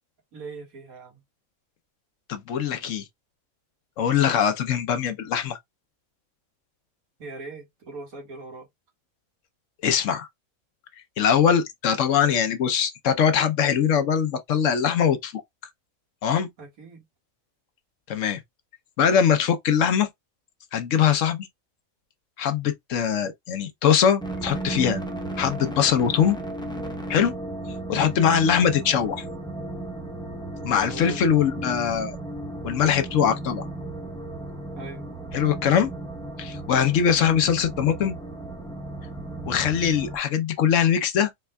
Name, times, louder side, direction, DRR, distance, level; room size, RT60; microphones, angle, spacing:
voice 1, 0.3-1.2 7.2-8.7 16.6-17.0 30.8-31.2 34.7-35.0, right 3 dB, 90° right, 2.1 m, -40 dB
voice 2, 2.3-3.0 4.0-5.6 9.8-10.3 11.2-15.4 16.2-16.5 18.1-18.4 19.0-20.1 20.7-21.5 22.4-25.0 25.4-26.4 27.1-27.3 27.9-29.2 30.6-32.2 32.6-33.6 35.3-35.9 36.4-38.1 39.5-41.3, left 8 dB, 65° left, 1.0 m, -22 dB
sound 1, 24.2-40.2, right 2 dB, 5° left, 0.4 m, -35 dB
4.4 x 3.3 x 2.2 m
omnidirectional pair, 1.4 m